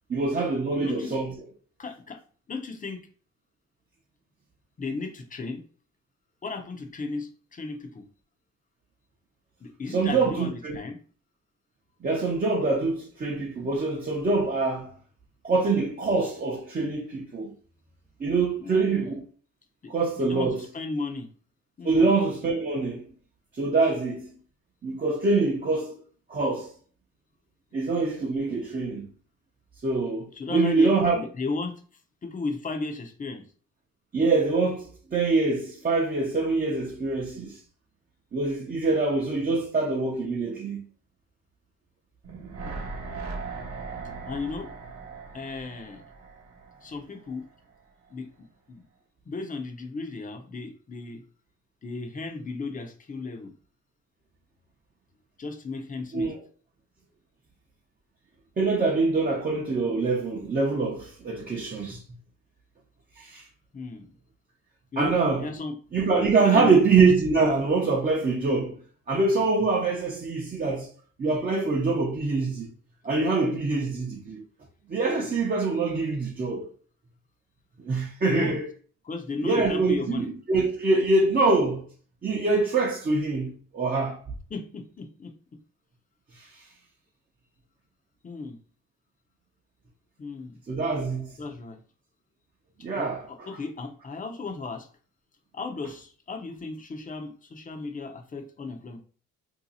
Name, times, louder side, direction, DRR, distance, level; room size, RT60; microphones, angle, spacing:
voice 1, 0.1-1.3 9.9-10.8 12.0-14.9 15.4-17.5 18.2-19.2 19.9-20.6 21.8-23.1 23.5-24.4 24.8-25.9 26.3-26.7 27.7-29.1 29.8-31.2 34.1-37.6 38.3-40.8 56.1-56.3 58.6-62.0 63.2-63.4 65.0-65.5 65.9-68.8 69.1-70.9 71.2-72.7 73.0-74.4 74.9-76.7 77.8-78.6 79.4-81.8 82.2-84.2 86.3-86.6 90.7-91.4 92.8-93.5, right 3 dB, 30° right, 0.7 m, -24 dB
voice 2, 0.7-1.1 1.8-2.2 2.5-3.0 4.8-5.6 6.4-8.1 9.6-11.0 18.6-19.2 19.8-21.3 21.8-22.2 30.3-31.8 32.2-33.4 42.6-42.9 44.3-44.7 45.3-46.0 46.8-47.5 48.1-48.8 49.3-51.2 51.8-53.5 55.4-56.3 63.7-64.0 64.9-65.8 66.5-66.8 78.3-78.6 79.0-80.3 84.5-85.3 88.2-88.6 90.2-90.6 91.4-91.8 93.0-94.9 95.5-99.0, left 3 dB, 25° left, 0.7 m, -35 dB
sound 1, 42.2-47.4 47.7-47.8, right 4 dB, 55° right, 1.1 m, -39 dB
2.8 x 2.3 x 3.9 m
cardioid pair, 90°, 30 cm